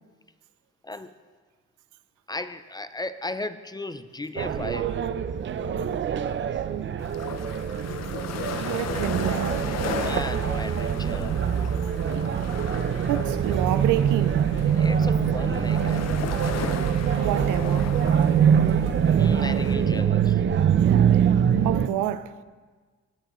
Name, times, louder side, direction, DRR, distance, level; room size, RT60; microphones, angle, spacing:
voice 1, 0.8-1.2 2.3-4.9 10.0-11.4 14.8-16.0 19.1-20.4, left 2 dB, 15° left, 0.4 m, -35 dB
sound 1, 4.4-21.9, right 8 dB, 40° right, 0.5 m, -24 dB
sound 2, 7.0-19.8, left 9 dB, 60° left, 0.6 m, -37 dB
voice 2, 8.6-9.7 13.1-14.4 17.2-18.0 21.6-22.4, right 12 dB, 85° right, 0.5 m, -28 dB
sound 3, 13.4-20.0, left 4 dB, 75° left, 3.1 m, -40 dB
18.5 x 8.0 x 3.1 m
cardioid pair, 90°, 30 cm